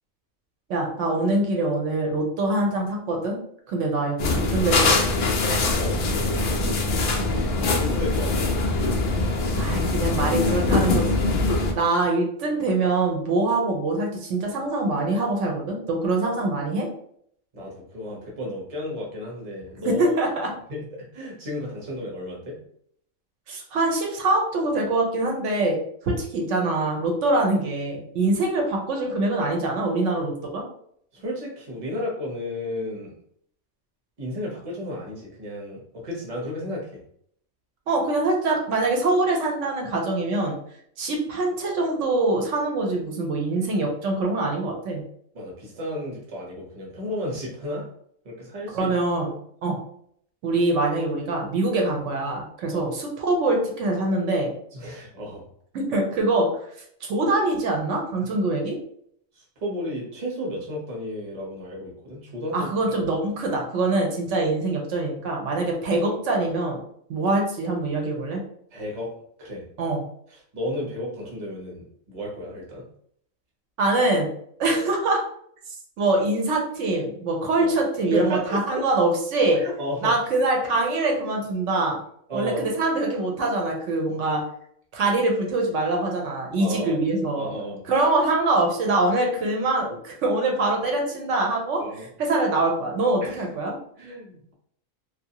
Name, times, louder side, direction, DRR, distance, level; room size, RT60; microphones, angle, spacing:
voice 1, 0.7-3.4 3.7-5.0 9.5-16.9 19.8-20.5 23.5-30.6 37.9-40.6 41.0-45.0 48.7-49.3 49.6-49.8 50.4-54.5 55.7-56.5 57.1-58.7 62.5-66.8 67.1-68.4 69.8-70.0 73.8-74.3 74.6-75.2 76.0-79.6 80.0-82.0 82.3-84.4 84.9-87.5 87.9-93.7, right 2 dB, 65° right, 1 dB, 0.9 m, -24 dB
sound 1, 4.2-11.7, left 3 dB, 85° left, 0.4 m, -23 dB
voice 2, 5.8-6.8 7.2-8.6 17.5-20.0 20.7-22.6 31.1-33.1 34.2-37.0 45.3-47.8 48.2-48.9 49.3-49.4 52.7-52.8 54.7-55.5 59.3-62.7 68.7-69.1 69.4-69.6 70.3-72.8 77.6-77.7 78.1-78.6 79.5-80.1 82.3-82.6 86.6-87.1 87.4-87.8 91.8-92.1 93.2-93.5 94.0-94.5, left 1 dB, 35° right, -2 dB, 0.7 m, -33 dB
2.7 x 2.4 x 2.7 m, 0.67 s
omnidirectional pair, 1.5 m